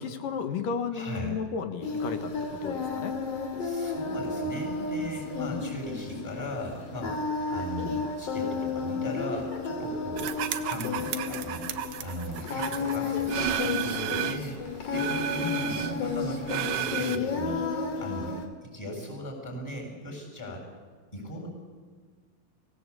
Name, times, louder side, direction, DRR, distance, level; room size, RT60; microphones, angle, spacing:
voice 1, 0.0-2.3 2.6-3.1 5.5-5.8 15.4-15.8, left 6 dB, 65° left, 8 dB, 2.6 m, -33 dB
voice 2, 0.9-1.4 3.6-7.2 7.5-11.7 12.0-14.6 14.9-17.6 18.0-18.4 18.7-20.6 21.1-21.5, equal, 5° left, 1 dB, 7.1 m, -37 dB
Singing, 1.8-18.5, left 4 dB, 45° left, 2.9 m, -32 dB
sound 1, 10.2-14.5 14.9-17.2, right 11 dB, 70° right, 2.3 m, -33 dB
24.5 x 17.5 x 8.5 m, 1.5 s
omnidirectional pair, 4.7 m